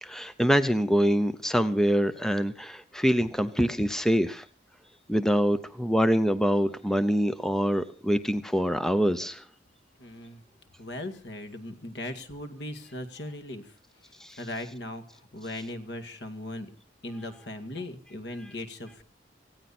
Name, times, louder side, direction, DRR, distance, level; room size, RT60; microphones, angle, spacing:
voice 1, 0.0-4.4 5.1-9.4 14.2-14.4, equal, 5° left, 11 dB, 0.8 m, -25 dB
voice 2, 10.0-10.4 10.8-16.7 17.0-19.0, left 1 dB, 70° left, 7 dB, 2.4 m, -39 dB
18.5 x 16.5 x 4.4 m, 0.38 s
head